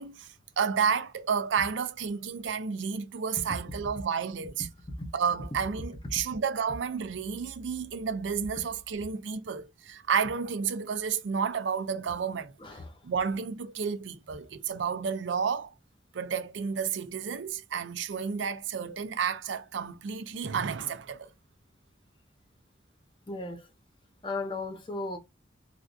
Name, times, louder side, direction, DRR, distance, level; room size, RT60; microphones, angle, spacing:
voice 1, 0.0-4.7 5.1-12.5 13.0-15.7 16.1-21.3, right 6 dB, 80° right, 0.5 m, -31 dB
voice 2, 12.6-13.0 23.3-23.7 24.2-25.2, left 2 dB, 25° left, 0.7 m, -35 dB
3.4 x 2.4 x 2.5 m
head